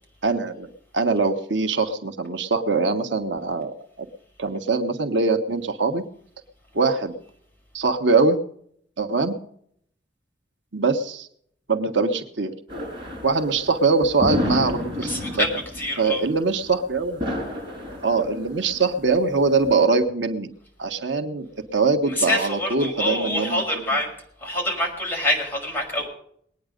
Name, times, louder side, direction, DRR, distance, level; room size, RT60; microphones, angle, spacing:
voice 1, 0.2-0.7 0.9-4.1 4.4-6.0 6.7-7.1 7.7-8.4 9.0-9.3 10.7-11.3 11.7-12.5 13.2-15.5 16.0-17.2 18.0-20.5 20.8-21.5 21.7-24.0, right 4 dB, 85° right, 6 dB, 1.4 m, -22 dB
sound 1, 12.7-19.7, left 1 dB, 30° right, 5.6 m, -31 dB
voice 2, 15.0-16.2 22.1-24.1 24.4-26.1, left 1 dB, 10° left, -1 dB, 5.5 m, -26 dB
20.5 x 9.6 x 5.2 m, 0.66 s
head